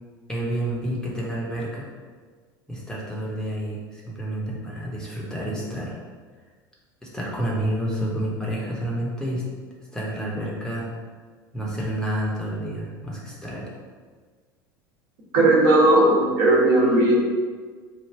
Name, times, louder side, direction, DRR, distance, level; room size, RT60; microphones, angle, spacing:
voice 1, 0.3-1.9 2.7-6.0 7.0-9.4 9.9-10.9 11.5-13.7, right 1 dB, 5° left, -4 dB, 0.9 m, -29 dB
voice 2, 15.3-17.1, right 2 dB, 55° right, -4 dB, 1.1 m, -17 dB
3.4 x 2.4 x 4.4 m, 1.5 s
figure-of-eight pair, 75°, 12 cm